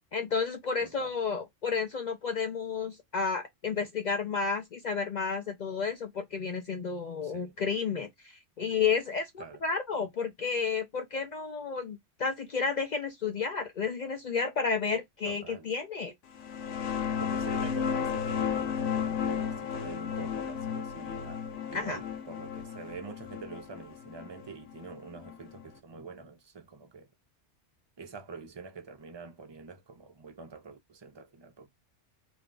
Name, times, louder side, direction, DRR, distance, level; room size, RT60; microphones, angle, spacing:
voice 1, 0.1-16.1 21.7-22.0, left 5 dB, 55° left, 0.5 m, -31 dB
voice 2, 0.8-1.1 7.2-7.6 9.4-9.6 15.2-15.7 17.0-21.4 21.7-27.1 28.0-31.7, right 4 dB, 35° right, 0.5 m, -46 dB
sound 1, 16.3-25.7, left 7 dB, 90° left, 1.0 m, -33 dB
2.6 x 2.2 x 3.7 m
omnidirectional pair, 1.2 m